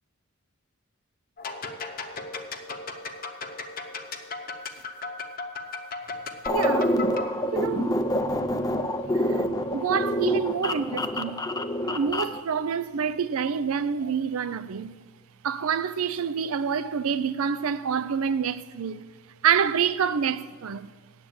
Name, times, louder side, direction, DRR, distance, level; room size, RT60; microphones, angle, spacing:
sound 1, 1.4-7.3, left 3 dB, 40° left, 0.8 m, -36 dB
sound 2, 6.5-12.4, left 1 dB, 15° left, 0.4 m, -27 dB
voice 1, 6.5-6.9 7.5-8.0 9.3-9.4 9.7-11.5 11.9-14.9 15.4-19.0 19.4-20.9, right 7 dB, 75° right, 0.4 m, -27 dB
8.6 x 7.6 x 8.6 m
head